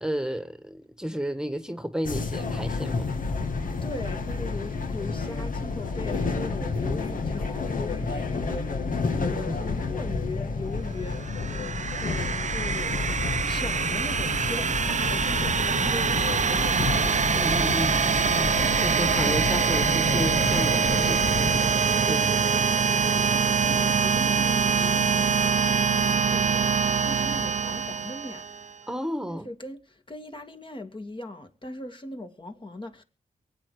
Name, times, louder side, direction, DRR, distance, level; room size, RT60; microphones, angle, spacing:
voice 1, 0.0-3.1 6.4-6.5 9.4-9.9 17.3-18.0 18.6-21.3 21.6-22.4 23.8-24.0 28.9-29.5, equal, 5° right, 1.5 m, -33 dB
sound 1, 2.0-21.7, left 4 dB, 80° left, 1.9 m, -30 dB
voice 2, 3.8-8.7 9.2-11.2 11.6-13.1 13.5-17.1 23.1-28.4 29.3-33.0, left 2 dB, 35° left, 2.2 m, -39 dB
sound 2, 11.1-28.7, right 6 dB, 60° right, 0.7 m, -24 dB
23.5 x 8.7 x 4.8 m
cardioid pair, 65°, 14 cm